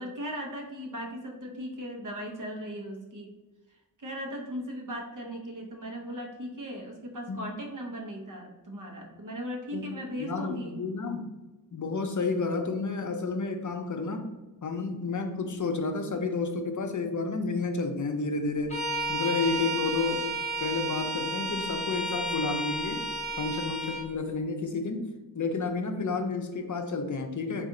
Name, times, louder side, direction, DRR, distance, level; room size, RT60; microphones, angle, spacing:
voice 1, 0.0-3.4 3.7-10.8, equal, 55° right, 0 dB, 0.9 m, -38 dB
voice 2, 10.2-11.3 11.7-14.3 14.6-23.0 23.4-25.1 25.3-27.7, left 4 dB, 50° left, 6 dB, 0.5 m, -31 dB
Bowed string instrument, 18.7-24.1, right 1 dB, 20° left, 1.0 m, -32 dB
4.1 x 2.5 x 3.7 m, 1.1 s
wide cardioid pair, 70°, 38 cm